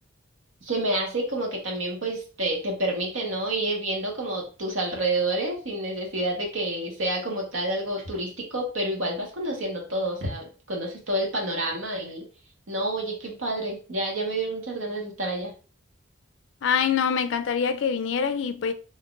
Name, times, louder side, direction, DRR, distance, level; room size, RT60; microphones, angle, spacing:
voice 1, 0.6-12.2 12.7-15.5, right 1 dB, 85° right, 1.1 m, -29 dB
voice 2, 16.6-18.7, left 7 dB, 70° left, 0.4 m, -25 dB
2.9 x 2.4 x 3.7 m
head